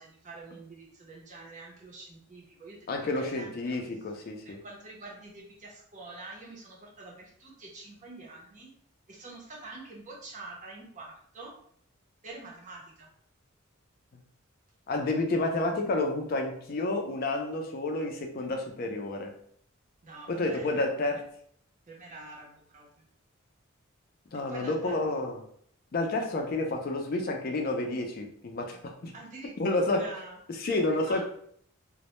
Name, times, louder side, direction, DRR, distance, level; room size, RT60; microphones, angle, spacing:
voice 1, 0.0-3.8 4.4-8.7 9.1-11.5 12.2-13.1 20.0-21.2 21.9-23.0 24.5-25.0 29.1-31.2, right 2 dB, 35° right, -2 dB, 0.6 m, -46 dB
voice 2, 2.9-4.6 14.9-19.3 20.3-21.2 24.3-25.4 25.9-29.1 29.6-30.0 30.6-31.2, left 2 dB, 45° left, 3 dB, 0.4 m, -30 dB
2.1 x 2.0 x 2.9 m, 0.65 s
head